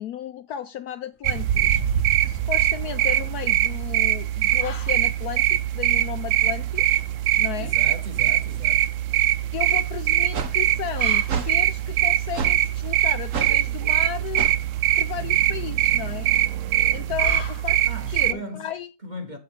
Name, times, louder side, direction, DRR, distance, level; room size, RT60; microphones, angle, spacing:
voice 1, 0.0-7.0 7.4-7.7 9.5-14.5 15.0-16.3 16.7-17.8 18.1-18.9, left 10 dB, 70° left, 1.0 m, -34 dB
sound 1, 1.1-18.2, left 6 dB, 40° left, 1.1 m, -45 dB
sound 2, 1.2-18.3, right 12 dB, 80° right, 0.7 m, -22 dB
voice 2, 7.5-8.9 17.8-18.7 19.0-19.4, equal, 25° right, 1.6 m, -37 dB
sound 3, 10.3-10.5 11.3-11.5 12.3-12.6 13.3-13.6 14.3-14.6, right 5 dB, 50° right, 1.2 m, -28 dB
7.7 x 7.5 x 3.7 m
omnidirectional pair, 1.9 m